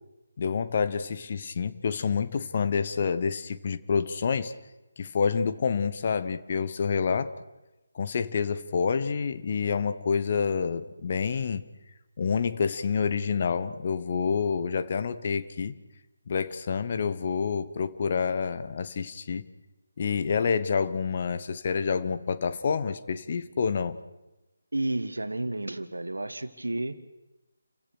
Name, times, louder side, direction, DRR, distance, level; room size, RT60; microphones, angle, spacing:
voice 1, 0.4-4.5 5.0-7.3 7.9-11.6 12.2-15.8 16.3-19.5 20.0-24.0, left 6 dB, 35° left, 12 dB, 1.1 m, -28 dB
voice 2, 24.7-26.9, right 2 dB, 70° right, 11 dB, 1.7 m, -31 dB
29.5 x 16.5 x 6.4 m, 1.0 s
figure-of-eight pair, 155°, 0 cm